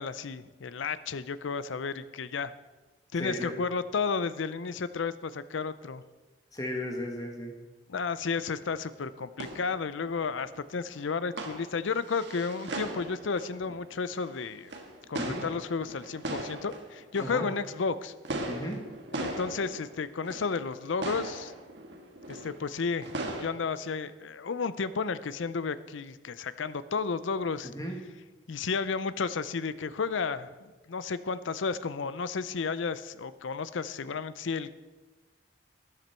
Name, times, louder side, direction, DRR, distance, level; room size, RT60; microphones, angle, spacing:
voice 1, 0.0-2.5 3.1-6.0 7.9-14.7 15.1-18.1 19.2-21.5 22.3-27.7 28.5-34.7, left 5 dB, 75° left, 15 dB, 0.5 m, -32 dB
voice 2, 3.2-3.5 6.5-7.6 15.1-15.4 17.2-17.5 18.5-18.8 27.6-28.0, left 1 dB, 20° left, 2 dB, 1.3 m, -35 dB
sound 1, 8.9-9.0 9.2-17.9 18.2-20.7 21.0-23.4, right 1 dB, 60° right, 1.5 m, -39 dB
12.5 x 11.0 x 4.4 m, 1.3 s
head